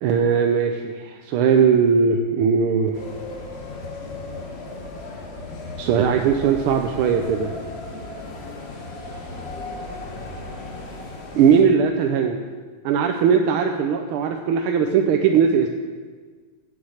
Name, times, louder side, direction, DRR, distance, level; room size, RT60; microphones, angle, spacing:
voice 1, 0.0-3.0 5.8-7.5 11.3-12.4 12.8-15.7, right 6 dB, 80° right, 4 dB, 1.5 m, -19 dB
sound 1, 2.9-11.6, left 2 dB, 35° left, 1.4 m, -35 dB
9.6 x 8.9 x 6.4 m, 1.5 s
omnidirectional pair, 2.4 m